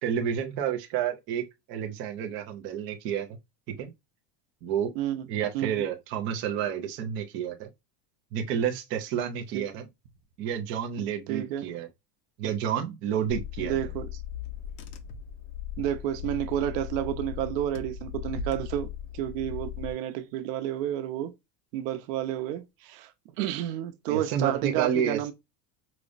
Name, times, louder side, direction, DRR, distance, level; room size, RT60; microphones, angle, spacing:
voice 1, 0.0-3.4 3.7-3.9 4.6-4.9 5.3-7.7 8.3-9.9 10.4-11.9 12.4-13.8 24.1-25.3, right 8 dB, 30° right, 0.4 m, -30 dB
voice 2, 5.5-5.9 9.5-9.6 11.3-11.6 13.6-14.0 15.8-21.3 21.7-23.1 23.4-25.3, right 12 dB, 85° right, 0.8 m, -30 dB
Car / Engine, 13.3-19.9, left 9 dB, 65° left, 0.8 m, -38 dB
4.9 x 2.0 x 2.4 m
cardioid pair, 170°, 48 cm